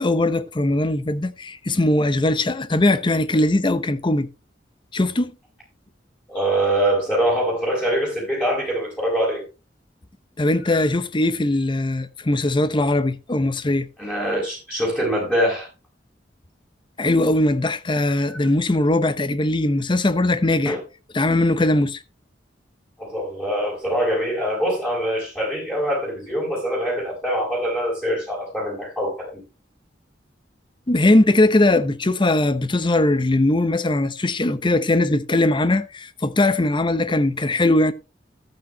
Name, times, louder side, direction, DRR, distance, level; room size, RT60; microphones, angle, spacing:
voice 1, 0.0-4.3 4.9-5.3 10.4-13.9 17.0-20.8 21.1-22.0 30.9-37.9, left 2 dB, 25° left, 0.7 m, -20 dB
voice 2, 6.3-9.4 10.7-10.8 14.0-15.7 18.3-18.4 20.6-20.8 23.0-29.4, equal, 10° left, 4.3 m, -24 dB
13.0 x 8.7 x 3.1 m
head